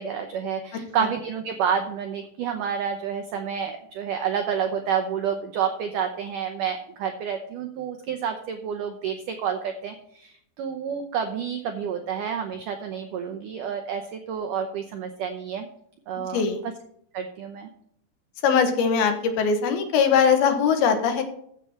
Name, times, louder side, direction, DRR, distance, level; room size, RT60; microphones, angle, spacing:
voice 1, 0.0-15.7 16.1-16.7 17.1-17.7, right 7 dB, 90° right, 5 dB, 1.8 m, -29 dB
voice 2, 18.4-21.2, left 6 dB, 70° left, 6 dB, 2.8 m, -21 dB
15.0 x 7.0 x 4.3 m, 0.68 s
omnidirectional pair, 5.0 m